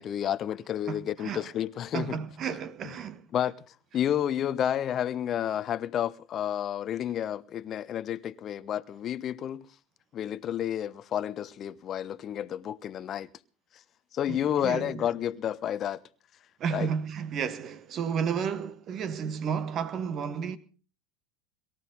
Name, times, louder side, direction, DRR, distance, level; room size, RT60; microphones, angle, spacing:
voice 1, 0.0-2.2 3.3-3.5 3.9-9.7 10.1-13.3 14.1-16.0 16.7-16.9, left 10 dB, 35° left, 0.9 m, -30 dB
voice 2, 0.9-1.5 1.9-3.2 14.3-15.1 16.6-20.6, right 7 dB, 35° right, 1.4 m, -32 dB
23.0 x 14.0 x 4.0 m
figure-of-eight pair, 75°, 0 cm